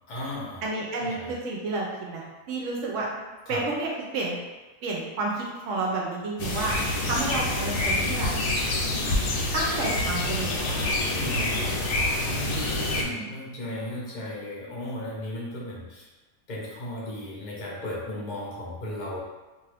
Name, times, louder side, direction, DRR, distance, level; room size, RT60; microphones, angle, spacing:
voice 1, 0.1-0.6 1.0-1.3 3.5-3.6 11.1-11.7 12.2-16.1 16.5-19.2, left 1 dB, 45° left, -5 dB, 0.6 m, -35 dB
voice 2, 0.6-3.1 3.5-4.4 4.8-6.7 7.1-8.3 9.5-10.8 13.2-13.3, right 2 dB, 70° right, -2 dB, 0.8 m, -30 dB
sound 1, 6.4-13.0, left 2 dB, 90° left, 1.1 m, -27 dB
2.6 x 2.5 x 3.3 m, 1.2 s
omnidirectional pair, 1.6 m